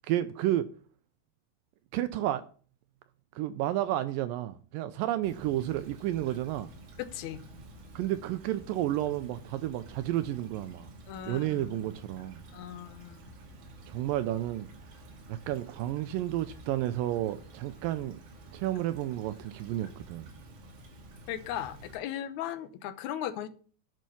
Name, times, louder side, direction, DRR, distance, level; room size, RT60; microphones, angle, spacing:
voice 1, 0.1-0.7 1.9-2.4 3.4-6.7 8.0-10.9 11.3-12.4 13.9-14.7 15.3-18.2 18.5-20.3, right 13 dB, 80° right, 2.2 m, -31 dB
Stream / Trickle dribble, 5.2-22.0, right 1 dB, 60° right, 3.2 m, -50 dB
voice 2, 7.0-7.4 11.1-12.0 12.5-13.2 21.3-23.5, left 10 dB, 70° left, 1.9 m, -37 dB
9.2 x 5.6 x 7.0 m
omnidirectional pair, 4.2 m